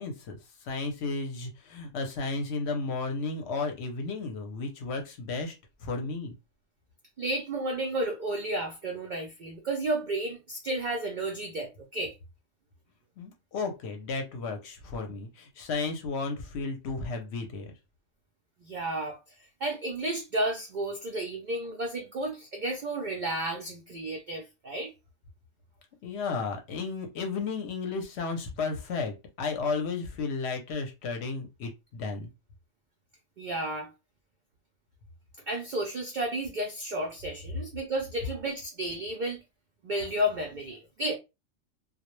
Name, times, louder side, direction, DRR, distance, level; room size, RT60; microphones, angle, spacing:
voice 1, 0.0-6.3 13.2-17.7 26.0-32.3, left 4 dB, 65° left, 0.8 m, -33 dB
voice 2, 7.2-12.1 18.6-19.2 19.6-24.9 33.4-33.9 35.5-39.4 39.8-41.1, right 1 dB, 80° right, 0.4 m, -32 dB
2.2 x 2.0 x 3.0 m
omnidirectional pair, 1.4 m